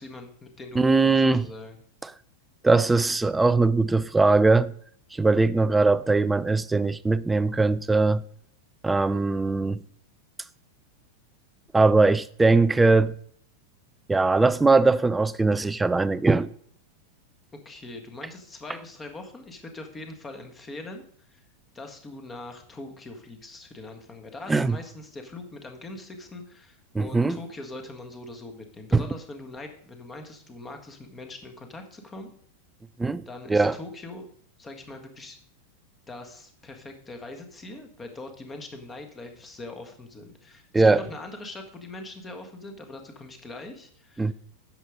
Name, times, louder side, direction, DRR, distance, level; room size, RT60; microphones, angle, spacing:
voice 1, 0.0-1.8 17.6-21.4 21.7-32.3 33.3-34.3 34.6-35.4 36.1-44.3, left 2 dB, 15° left, 1.6 m, -42 dB
voice 2, 0.8-1.5 2.6-4.7 5.1-8.2 8.8-9.8 11.7-13.1 14.1-16.5 24.5-24.8 26.9-27.4 28.9-29.0 33.0-33.2 33.5-33.7 40.7-41.0 44.2-44.3, right 3 dB, 10° right, 0.4 m, -20 dB
9.8 x 6.9 x 5.0 m
figure-of-eight pair, 90°, 0 cm